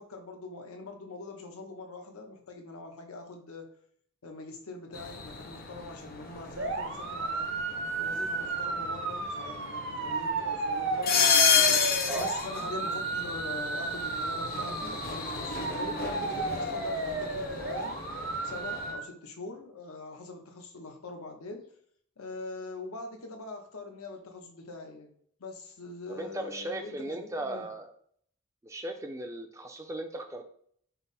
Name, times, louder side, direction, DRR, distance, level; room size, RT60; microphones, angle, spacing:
voice 1, 0.0-3.7 4.2-7.5 7.9-11.2 12.1-18.0 18.4-21.7 22.2-25.1 25.4-27.7, left 3 dB, 80° left, 3 dB, 0.8 m, -43 dB
sound 1, 4.9-18.9, left 6 dB, 40° left, 0.6 m, -32 dB
sound 2, 6.6-19.0, right 3 dB, 55° right, 0.7 m, -33 dB
voice 2, 26.1-27.9 28.6-30.5, right 1 dB, 15° right, 5 dB, 0.4 m, -37 dB
5.5 x 2.0 x 4.1 m, 0.64 s
head